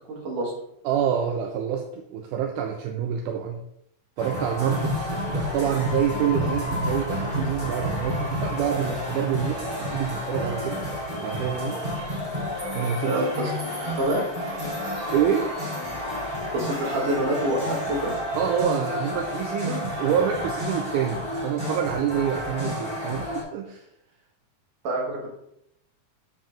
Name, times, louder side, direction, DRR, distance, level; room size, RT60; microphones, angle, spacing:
voice 1, 0.1-0.5 13.0-13.5 14.0-14.2 16.5-18.2 24.8-25.2, right 1 dB, 65° right, -2 dB, 2.8 m, -26 dB
voice 2, 0.9-3.6 4.2-10.8 11.2-11.8 12.8-13.2 15.1-15.5 18.4-23.8, right 8 dB, 80° right, 3 dB, 1.9 m, -27 dB
sound 1, 4.2-23.4, left 1 dB, 15° right, 2.4 m, -30 dB
7.3 x 7.3 x 2.4 m, 0.77 s
omnidirectional pair, 4.2 m